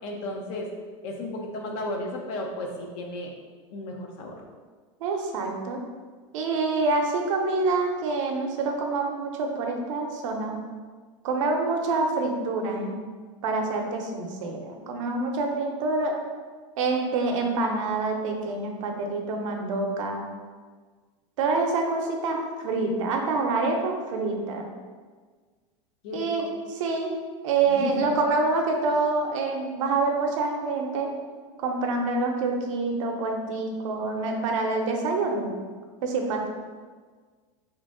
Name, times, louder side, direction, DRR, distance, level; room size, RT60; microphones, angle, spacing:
voice 1, 0.0-0.7 1.0-3.3 3.7-4.3 26.0-26.5 27.7-28.1, left 2 dB, 60° left, 1 dB, 0.7 m, -33 dB
voice 2, 5.0-5.8 6.3-10.6 11.2-12.9 13.4-16.2 16.8-20.3 21.4-24.7 26.1-27.1 27.4-31.1 31.6-35.5 36.0-36.5, right 3 dB, 85° right, 2 dB, 0.6 m, -26 dB
2.9 x 2.5 x 3.6 m, 1.5 s
supercardioid pair, 125°, 16 cm